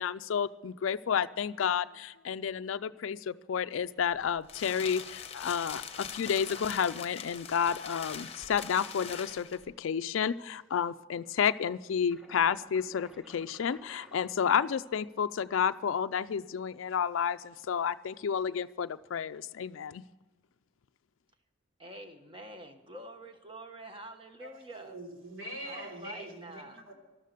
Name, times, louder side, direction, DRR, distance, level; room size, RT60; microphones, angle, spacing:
voice 1, 0.0-20.0, left 7 dB, 80° left, 11 dB, 0.4 m, -31 dB
sound 1, 4.0-9.7, left 7 dB, 30° left, 1.0 m, -42 dB
sound 2, 12.1-15.1 15.9-16.4, equal, 5° right, 1.2 m, -55 dB
voice 2, 21.8-25.0 25.6-26.8, right 1 dB, 25° right, 6 dB, 1.3 m, -47 dB
voice 3, 24.4-26.9, right 1 dB, 75° right, 2 dB, 3.5 m, -43 dB
13.0 x 12.5 x 6.7 m, 1.1 s
head